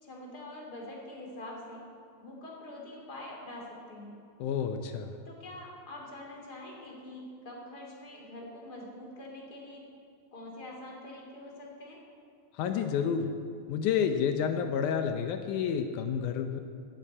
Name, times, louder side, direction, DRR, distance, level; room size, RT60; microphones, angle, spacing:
voice 1, 0.0-1.8 2.2-4.2 5.2-9.8 10.3-12.0, left 1 dB, 30° left, -2 dB, 3.0 m, -45 dB
voice 2, 4.4-5.1 12.6-13.3 13.7-16.6, left 7 dB, 75° left, 6 dB, 1.9 m, -29 dB
12.0 x 9.6 x 8.6 m, 2.3 s
omnidirectional pair, 4.2 m